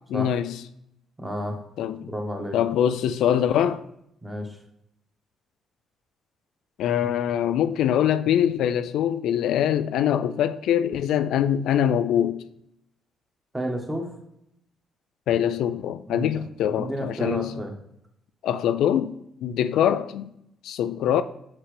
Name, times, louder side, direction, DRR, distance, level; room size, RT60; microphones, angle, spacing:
voice 1, 0.1-0.6 1.8-2.1 2.5-3.8 6.8-12.4 15.3-17.5 18.4-20.3 20.6-21.2, left 10 dB, 85° left, 0.3 m, -23 dB
voice 2, 1.2-1.6 2.0-2.6 4.2-4.6 13.5-14.1 16.1-16.3 16.6-17.7, equal, 15° right, 1.3 m, -31 dB
5.8 x 5.6 x 3.3 m
cardioid pair, 90°, 0 cm